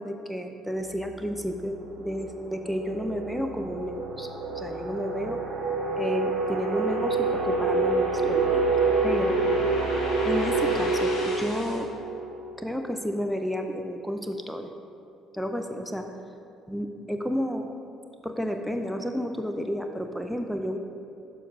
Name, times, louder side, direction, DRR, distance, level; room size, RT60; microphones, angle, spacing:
voice 1, 0.0-4.3 4.5-5.4 6.0-8.6 9.0-9.4 10.2-11.9 12.6-14.7 15.3-16.1 16.7-17.7 18.2-20.8, equal, ahead, 5 dB, 0.5 m, -31 dB
sound 1, 0.9-1.1 1.5-13.0, right 3 dB, 50° right, 0.9 m, -27 dB
sound 2, 4.0-11.8, left 1 dB, 55° left, 1.3 m, -40 dB
11.5 x 5.3 x 2.4 m, 2.6 s
figure-of-eight pair, 50°, 0 cm